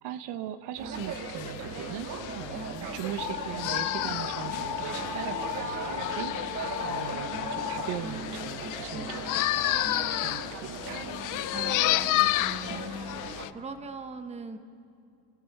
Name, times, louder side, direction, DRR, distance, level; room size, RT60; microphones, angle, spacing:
voice 1, 0.0-11.1, right 10 dB, 60° right, 11 dB, 1.1 m, -39 dB
sound 1, 0.8-13.5, right 4 dB, 35° right, 1.9 m, -38 dB
sound 2, 0.9-13.5, left 16 dB, 45° left, 0.6 m, -32 dB
sound 3, 3.2-8.0, left 13 dB, 80° left, 1.5 m, -36 dB
voice 2, 11.5-12.9 13.5-14.6, right 4 dB, 15° right, 8 dB, 1.1 m, -40 dB
28.5 x 16.5 x 6.7 m, 2.5 s
cardioid pair, 150°, 46 cm